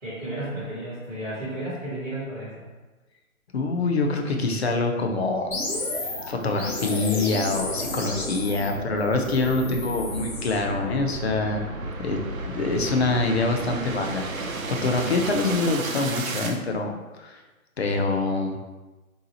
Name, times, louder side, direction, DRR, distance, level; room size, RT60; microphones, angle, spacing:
voice 1, 0.0-2.6, right 1 dB, 5° right, -12 dB, 0.7 m, -33 dB
voice 2, 3.5-5.6 6.3-11.6 12.0-12.2 12.5-17.4 17.8-18.6, left 3 dB, 45° left, 3 dB, 0.5 m, -25 dB
sound 1, 5.4-16.6, right 3 dB, 65° right, 0.7 m, -34 dB
sound 2, 5.5-10.6, left 2 dB, 75° left, 1.2 m, -32 dB
3.7 x 2.7 x 2.8 m, 1.2 s
figure-of-eight pair, 145°, 44 cm